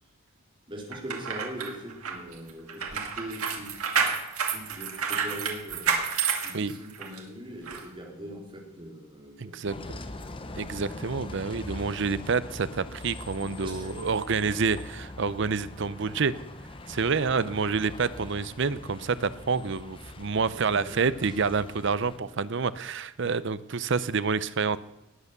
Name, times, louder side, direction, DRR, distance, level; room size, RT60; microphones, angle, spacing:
voice 1, 0.7-4.0 4.5-6.0 6.4-10.3 13.6-13.9 20.5-21.4, equal, 25° right, -1 dB, 3.5 m, -42 dB
sound 1, 0.9-7.2 7.7-7.8, right 6 dB, 85° right, 2.3 m, -30 dB
voice 2, 9.4-9.7 10.6-16.4 16.9-24.8, right 5 dB, 55° right, 16 dB, 0.6 m, -28 dB
Bus, 9.7-22.2, left 2 dB, 25° left, 0.8 m, -42 dB
19.5 x 8.3 x 6.7 m, 0.96 s
head